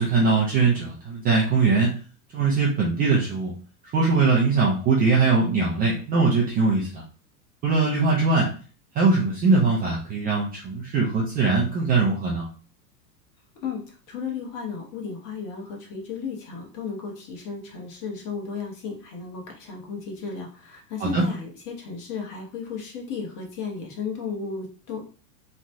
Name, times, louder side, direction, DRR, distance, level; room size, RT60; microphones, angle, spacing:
voice 1, 0.0-1.9 2.3-3.5 3.9-7.0 7.6-8.5 9.0-12.4 21.0-21.2, right 4 dB, 20° right, -4 dB, 0.4 m, -21 dB
voice 2, 14.1-25.0, left 5 dB, 40° left, 0 dB, 1.1 m, -34 dB
3.1 x 2.2 x 2.6 m, 0.38 s
hypercardioid pair, 105°, 49 cm